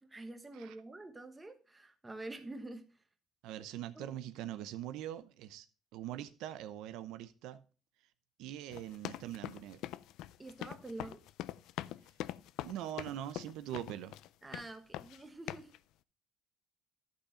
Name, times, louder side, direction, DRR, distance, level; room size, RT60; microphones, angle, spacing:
voice 1, 0.0-2.9 3.9-4.2 10.4-11.2 14.4-15.7, right 2 dB, 10° right, 1.1 m, -47 dB
voice 2, 3.4-5.6 5.9-7.6 8.4-9.8 12.6-14.1, right 12 dB, 80° right, 0.7 m, -42 dB
sound 1, 8.7-14.3 14.5-15.2 15.5-15.8, left 14 dB, 70° left, 0.4 m, -43 dB
11.5 x 5.7 x 5.0 m
cardioid pair, 160°, 0 cm